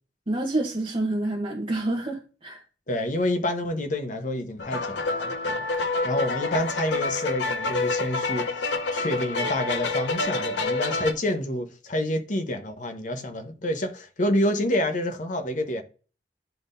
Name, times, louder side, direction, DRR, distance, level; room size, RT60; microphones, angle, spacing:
voice 1, 0.3-2.6, right 2 dB, 30° right, 0.9 m, -28 dB
voice 2, 2.9-5.6 6.0-8.5 8.9-15.8, left 1 dB, 45° left, 0.9 m, -28 dB
sound 1, 4.6-11.1, left 3 dB, 80° left, 0.7 m, -27 dB
10.0 x 3.6 x 2.6 m
head